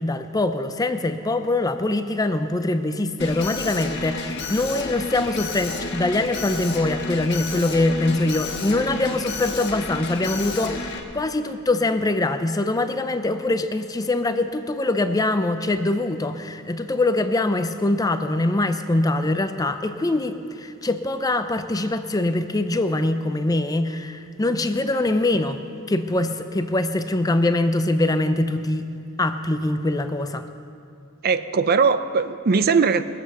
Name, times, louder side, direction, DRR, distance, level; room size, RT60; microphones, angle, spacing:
voice 1, 0.0-28.9 29.2-30.5, left 2 dB, 15° left, 9 dB, 0.5 m, -23 dB
Alarm, 3.2-11.0, left 3 dB, 55° left, 1.3 m, -31 dB
voice 2, 31.2-33.0, right 5 dB, 45° right, 12 dB, 0.5 m, -20 dB
20.0 x 7.9 x 6.9 m, 2.4 s
head